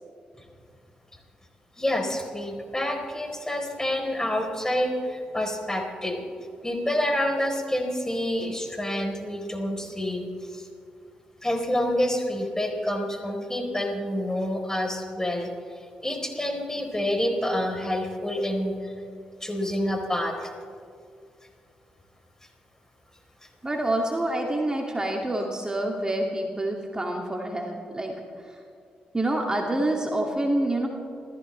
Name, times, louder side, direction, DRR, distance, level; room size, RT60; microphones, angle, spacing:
voice 1, 1.8-6.2 6.6-10.2 10.5-10.7 11.4-15.5 16.0-18.9 19.4-20.5, left 1 dB, 15° left, 2 dB, 4.1 m, -28 dB
voice 2, 23.6-28.1 28.5-28.6 29.1-30.9, right 1 dB, 20° right, 0 dB, 2.5 m, -27 dB
27.5 x 15.0 x 3.4 m, 2.3 s
hypercardioid pair, 40°, 4 cm